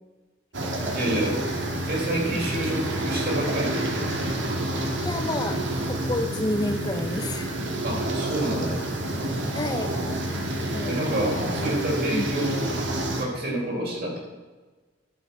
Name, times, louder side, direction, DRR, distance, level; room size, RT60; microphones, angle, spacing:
sound 1, 0.5-13.2, right 1 dB, 80° right, 1.9 m, -28 dB
voice 1, 0.9-1.4 1.9-4.1 7.8-8.8 10.9-12.7 13.2-14.2, right 1 dB, 55° right, -2 dB, 3.9 m, -28 dB
voice 2, 5.0-7.5 9.5-9.9 10.7-10.9 11.3-11.7 12.1-12.3, left 2 dB, 20° left, 7 dB, 0.6 m, -30 dB
12.0 x 6.6 x 6.7 m, 1.3 s
head